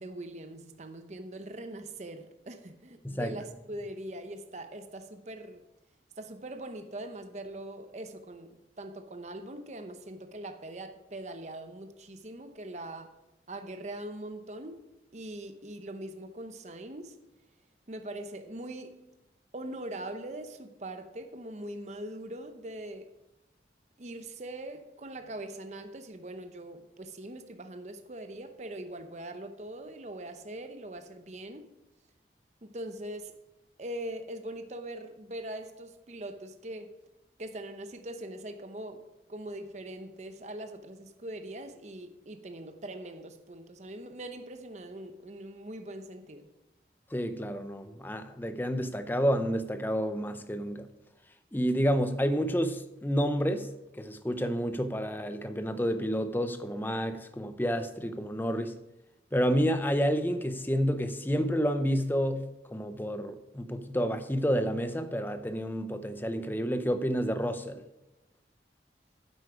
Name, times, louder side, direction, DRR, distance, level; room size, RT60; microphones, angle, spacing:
voice 1, 0.0-5.6 6.2-13.1 13.5-14.8 15.1-17.2 17.9-19.0 19.5-23.1 24.0-31.7 32.6-33.4 33.8-36.9 37.4-46.5, right 1 dB, 40° right, 0.8 m, -42 dB
voice 2, 47.1-50.9 51.5-53.7 53.9-58.7 59.3-62.4 62.7-67.8, equal, 10° left, 0.6 m, -29 dB
9.8 x 8.2 x 4.9 m
head